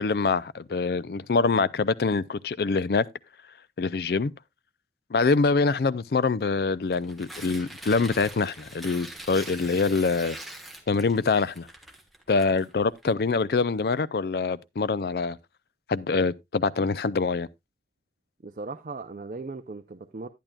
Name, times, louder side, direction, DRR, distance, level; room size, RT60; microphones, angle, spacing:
voice 1, 0.0-3.1 3.8-4.3 5.1-10.4 10.9-11.7 12.3-15.4 15.9-17.5, left 4 dB, 55° left, 0.4 m, -25 dB
Tearing, 6.8-13.1, right 1 dB, ahead, 1.3 m, -43 dB
voice 2, 18.4-20.3, right 3 dB, 45° right, 0.5 m, -38 dB
11.0 x 10.0 x 2.3 m
head